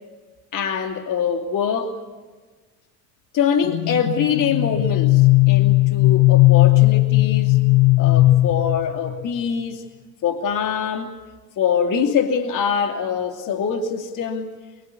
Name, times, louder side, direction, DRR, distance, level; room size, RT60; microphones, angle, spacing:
voice 1, 0.5-2.0 3.3-7.6 8.0-9.8 10.2-11.2 11.6-14.5, left 7 dB, 40° left, 2.7 m, -24 dB
sound 1, 3.6-9.2, left 19 dB, 55° left, 0.7 m, -16 dB
24.5 x 22.5 x 8.4 m
hypercardioid pair, 80°, 50 cm